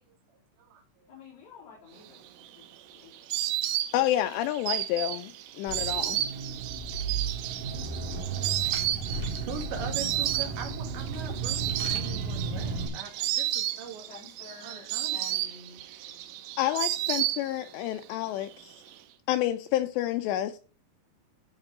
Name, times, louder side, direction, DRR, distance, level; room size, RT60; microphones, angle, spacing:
voice 1, 1.1-3.1 14.1-15.8 16.7-16.8, left 4 dB, 60° left, 5.5 m, -50 dB
Insect, 2.2-17.9 18.1-18.9, right 13 dB, 85° right, 3.3 m, -32 dB
voice 2, 3.9-5.3 5.6-6.2 16.6-18.8 19.3-20.6, left 13 dB, 85° left, 2.4 m, -29 dB
Car / Engine, 5.7-12.9, right 4 dB, 50° right, 3.3 m, -34 dB
voice 3, 9.3-14.1 14.6-15.3, right 5 dB, 70° right, 4.2 m, -41 dB
15.0 x 5.2 x 3.7 m
omnidirectional pair, 5.5 m